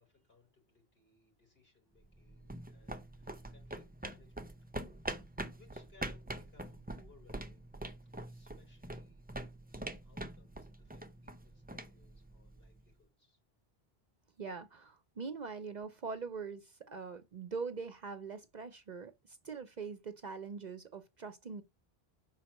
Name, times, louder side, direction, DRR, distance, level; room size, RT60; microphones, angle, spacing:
voice 1, 0.0-4.7 5.0-7.7 8.3-9.3 9.6-13.4, left 4 dB, 65° left, 4.2 m, -66 dB
sound 1, 2.0-12.8, right 1 dB, 10° right, 0.5 m, -45 dB
voice 2, 14.4-21.6, right 5 dB, 50° right, 0.7 m, -43 dB
5.6 x 4.4 x 6.3 m
omnidirectional pair, 1.1 m